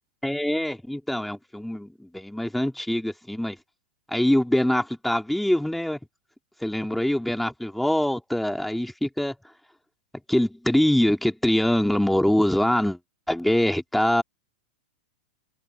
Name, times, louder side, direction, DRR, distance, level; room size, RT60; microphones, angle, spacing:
voice 1, 0.2-3.6 4.1-6.0 6.6-9.3 10.3-13.0 13.3-14.2, left 1 dB, ahead, 2.9 m, -24 dB
supercardioid pair, 145°, 5 cm